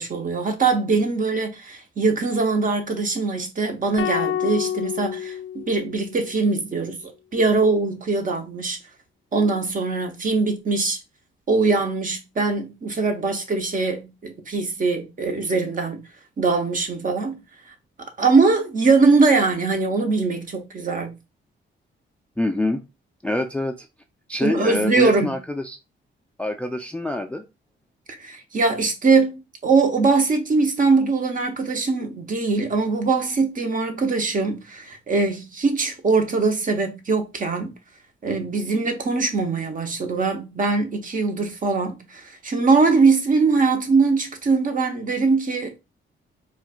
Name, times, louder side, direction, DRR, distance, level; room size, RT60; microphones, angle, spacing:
voice 1, 0.0-7.0 7.3-8.8 9.3-11.0 11.5-16.0 16.4-17.4 18.0-21.2 24.4-25.4 28.1-37.7 38.2-45.8, right 4 dB, 40° right, 0.8 m, -22 dB
sound 1, 4.0-6.3, left 10 dB, 70° left, 0.5 m, -28 dB
voice 2, 22.4-22.8 23.2-23.9 24.3-25.8 26.4-27.4, left 1 dB, 5° left, 0.3 m, -25 dB
4.2 x 2.3 x 2.4 m
cardioid pair, 95°, 21 cm